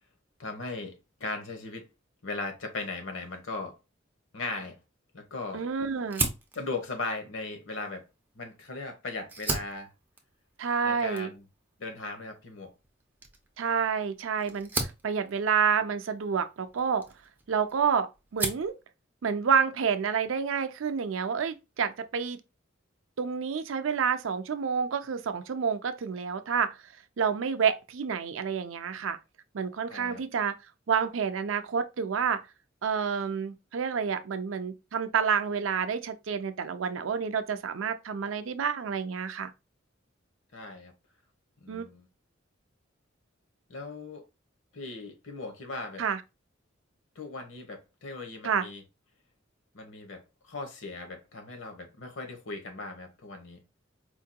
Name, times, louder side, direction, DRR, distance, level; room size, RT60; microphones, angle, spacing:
voice 1, 0.4-1.9 2.2-3.8 4.3-4.8 5.1-5.6 6.5-8.1 8.3-9.9 10.8-11.4 11.8-12.7 29.9-30.2 40.5-40.9 41.6-42.1 43.7-44.2 44.7-46.0 47.1-48.8 49.7-53.6, left 3 dB, 85° left, 1.0 m, -38 dB
voice 2, 5.5-6.3 10.6-11.3 13.6-17.1 17.5-18.7 19.2-22.4 23.2-26.8 27.2-29.2 29.5-30.5 30.9-32.4 32.8-39.5 41.7-41.8 46.0-46.2 48.4-48.7, right 6 dB, 80° right, 0.5 m, -29 dB
Fire, 6.1-8.7 9.2-17.8 18.1-18.8, right 3 dB, 10° right, 0.6 m, -37 dB
4.5 x 2.7 x 2.2 m
head